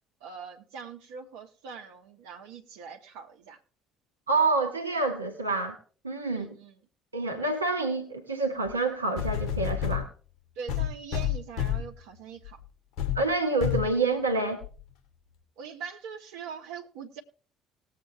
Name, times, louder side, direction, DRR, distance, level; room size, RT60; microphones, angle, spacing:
voice 1, 0.2-3.6 6.3-6.8 10.5-12.6 15.6-17.2, right 6 dB, 65° right, 1.3 m, -42 dB
voice 2, 4.3-5.8 6.0-6.5 7.1-10.1 13.1-14.6, right 3 dB, 90° right, 1.1 m, -27 dB
sound 1, 8.7-8.8 9.2-10.1 10.7-11.9 12.4-12.6 13.0-13.2 13.6-13.9 14.6-14.7, left 10 dB, 60° left, 2.4 m, -29 dB
19.0 x 7.8 x 3.1 m
figure-of-eight pair, 55°, 0 cm